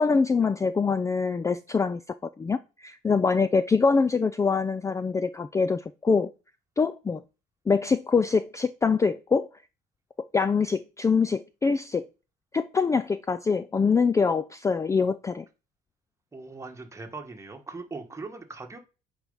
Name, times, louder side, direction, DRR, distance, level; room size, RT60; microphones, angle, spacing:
voice 1, 0.0-2.0 2.4-6.3 6.8-7.2 7.7-9.5 10.3-12.0 12.5-15.4, left 5 dB, 20° left, 0.4 m, -24 dB
voice 2, 16.3-18.8, right 3 dB, 15° right, 1.6 m, -40 dB
8.8 x 4.5 x 5.5 m
cardioid pair, 110°, 17 cm